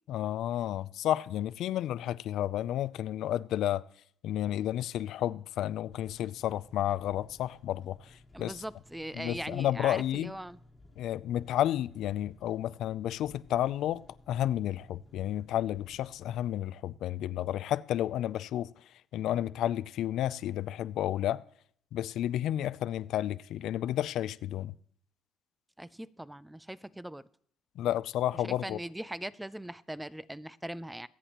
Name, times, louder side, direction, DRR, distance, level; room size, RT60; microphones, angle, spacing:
voice 1, 0.1-3.8 4.2-8.6 9.2-10.3 11.0-18.7 19.1-21.4 21.9-24.7 27.8-28.8, left 12 dB, 70° left, 0.4 m, -31 dB
Engine, 5.9-16.5, left 2 dB, 20° left, 1.5 m, -58 dB
voice 2, 8.3-10.6 25.8-27.2 28.3-31.1, right 1 dB, 5° right, 0.4 m, -40 dB
24.0 x 8.3 x 3.0 m
cardioid pair, 90°, 0 cm